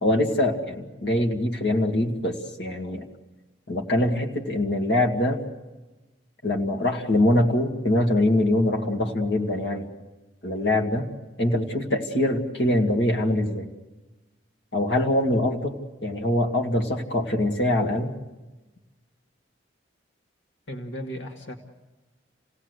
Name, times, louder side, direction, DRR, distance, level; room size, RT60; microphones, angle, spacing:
voice 1, 0.0-3.1 3.7-5.4 6.4-9.9 10.4-11.1 11.4-13.7 14.7-15.8 16.0-18.1, left 1 dB, 60° left, 2 dB, 2.2 m, -23 dB
voice 2, 20.7-21.6, equal, 75° left, 2 dB, 1.9 m, -35 dB
29.0 x 17.5 x 8.1 m, 1.2 s
head